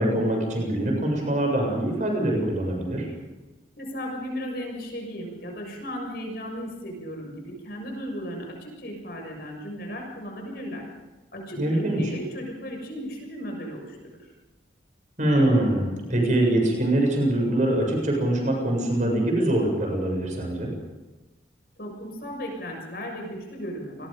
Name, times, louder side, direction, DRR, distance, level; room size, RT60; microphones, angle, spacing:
voice 1, 0.0-3.1 11.6-12.0 15.2-20.7, right 1 dB, 40° right, 1 dB, 7.2 m, -23 dB
voice 2, 3.8-10.9 11.3-14.2 21.8-24.1, equal, 55° left, 1 dB, 6.8 m, -35 dB
28.5 x 21.0 x 5.3 m, 1.2 s
head